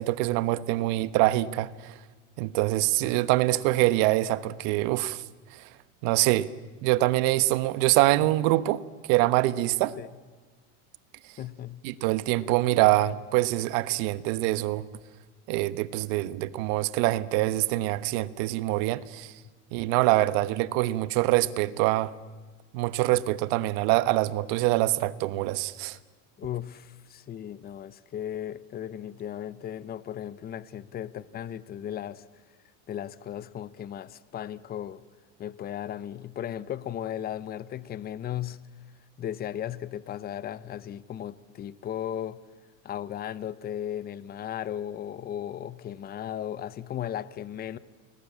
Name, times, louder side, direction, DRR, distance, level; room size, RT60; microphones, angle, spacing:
voice 1, 0.0-1.9 2.4-5.2 5.5-5.6 6.0-6.5 6.8-8.8 9.1-10.0 11.8-14.9 15.5-19.3 19.7-22.1 22.7-26.0, right 17 dB, 65° right, 1.3 m, -25 dB
voice 2, 11.4-11.8 26.4-32.3 32.9-35.0 35.4-38.6 39.2-42.4 42.8-47.8, left 10 dB, 25° left, 0.8 m, -36 dB
29.5 x 21.0 x 8.7 m
cardioid pair, 150°, 36 cm